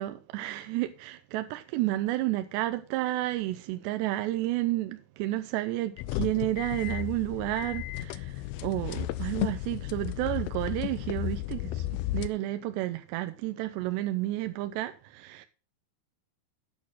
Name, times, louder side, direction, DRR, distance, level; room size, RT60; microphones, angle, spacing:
voice 1, 0.0-15.5, right 16 dB, 85° right, 2.8 m, -31 dB
sound 1, 6.0-12.3, left 15 dB, 85° left, 2.1 m, -34 dB
8.8 x 7.0 x 6.1 m
omnidirectional pair, 5.0 m